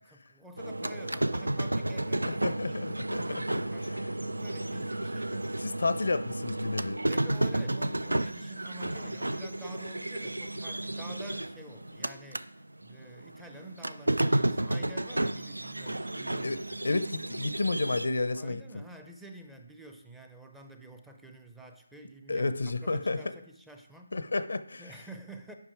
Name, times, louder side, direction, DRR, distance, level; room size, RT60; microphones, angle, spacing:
voice 1, 0.0-2.8 3.1-5.7 7.1-12.5 12.8-17.2 18.3-22.5 22.8-24.1 24.8-25.5, right 1 dB, 5° right, 3 dB, 0.5 m, -49 dB
sound 1, 0.6-12.5 12.8-18.1, right 1 dB, 90° right, 0.4 m, -32 dB
voice 2, 2.2-3.6 5.6-7.0 16.4-16.6 16.8-18.8 22.3-23.2 24.1-24.8, left 3 dB, 65° left, 13 dB, 0.6 m, -31 dB
8.1 x 5.5 x 4.7 m, 0.76 s
figure-of-eight pair, 160°, 0 cm